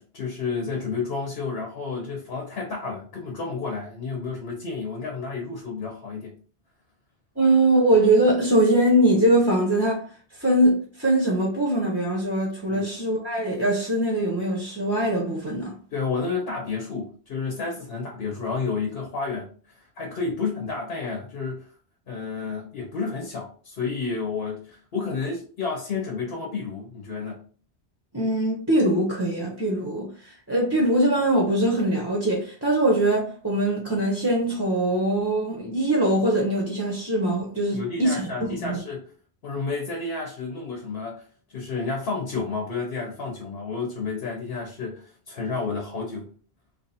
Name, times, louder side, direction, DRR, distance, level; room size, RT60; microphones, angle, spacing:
voice 1, 0.0-6.3 12.7-12.8 15.9-19.5 20.0-21.7 22.1-27.4 37.7-39.0 39.4-41.2 41.5-46.3, left 4 dB, 60° left, 1.1 m, -31 dB
voice 2, 7.4-15.7 28.1-38.8, right 1 dB, 15° right, 0.9 m, -22 dB
2.9 x 2.7 x 4.1 m
omnidirectional pair, 1.1 m